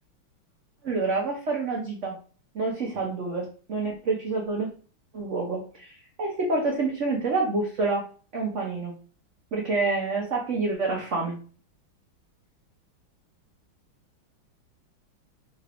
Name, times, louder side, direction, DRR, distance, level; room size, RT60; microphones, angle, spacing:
voice 1, 0.8-2.2 2.5-4.7 5.1-8.0 8.3-8.9 9.5-11.4, right 3 dB, 80° right, -1 dB, 0.6 m, -28 dB
3.7 x 3.3 x 2.5 m, 0.40 s
omnidirectional pair, 2.2 m